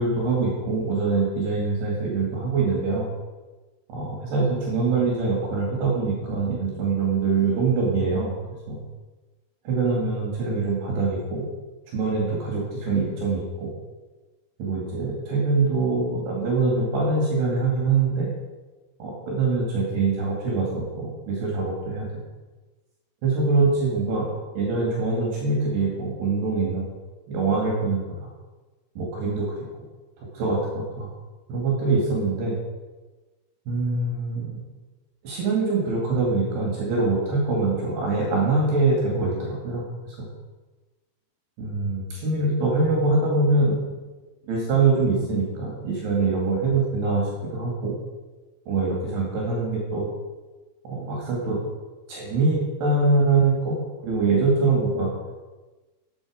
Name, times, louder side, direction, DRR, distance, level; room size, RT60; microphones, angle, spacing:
voice 1, 0.0-3.1 3.9-8.3 8.7-8.8 9.7-11.4 11.9-13.7 14.6-18.3 19.0-22.1 23.2-24.3 24.5-26.8 27.3-28.3 29.0-29.5 30.2-31.1 31.5-32.6 33.7-34.5 35.2-40.3 41.6-43.8 44.5-48.0 48.7-50.0 50.8-51.6 52.1-53.8 54.0-55.1, right 3 dB, 60° right, -2 dB, 4.1 m, -24 dB
13.5 x 8.7 x 5.0 m, 1.2 s
omnidirectional pair, 5.6 m